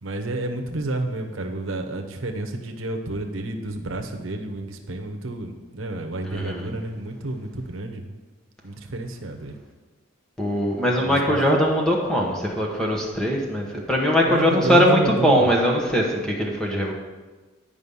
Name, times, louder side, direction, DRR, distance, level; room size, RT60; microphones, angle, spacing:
voice 1, 0.0-8.0 8.6-9.6 11.0-11.6 14.2-15.5, right 2 dB, 80° right, 4 dB, 0.9 m, -30 dB
voice 2, 6.2-6.7 10.4-16.9, equal, 5° left, -2 dB, 1.1 m, -21 dB
9.9 x 5.1 x 5.4 m, 1.2 s
head